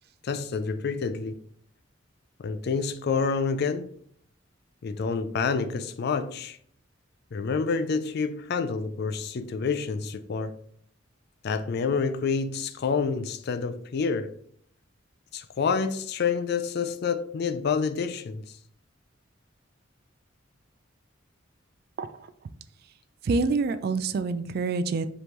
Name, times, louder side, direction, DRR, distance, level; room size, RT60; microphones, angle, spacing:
voice 1, 0.2-1.4 2.4-3.9 4.8-6.6 7.3-10.5 11.4-14.3 15.3-18.4, left 5 dB, 55° left, 0.4 m, -28 dB
voice 2, 22.0-22.3 23.2-25.1, right 4 dB, 50° right, 0.3 m, -27 dB
5.2 x 3.1 x 3.0 m
head